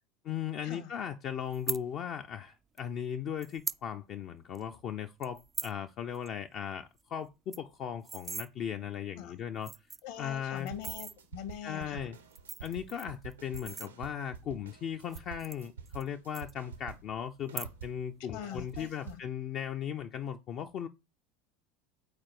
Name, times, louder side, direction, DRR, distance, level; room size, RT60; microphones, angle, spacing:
voice 1, 0.2-9.7 10.2-10.7 11.6-12.2 12.6-20.9, left 9 dB, 40° left, 0.4 m, -37 dB
sound 1, 1.5-1.8 2.8-2.9 3.4-3.8 4.2-4.3 4.5-4.8 5.2-5.8 6.1-6.3 6.6-6.7 7.0-7.1 7.3-8.5 9.2-9.3 9.6-10.2 10.7-11.2 12.1-14.3 15.0-16.1 16.3-17.0 17.4-18.0 18.3-18.7, right 5 dB, 20° right, 0.3 m, -40 dB
voice 2, 10.0-12.1 18.3-19.2, left 10 dB, 60° left, 1.2 m, -43 dB
sound 2, 10.6-17.2 17.5-19.3, right 7 dB, 80° right, 0.7 m, -48 dB
4.7 x 4.3 x 5.9 m
figure-of-eight pair, 75°, 0 cm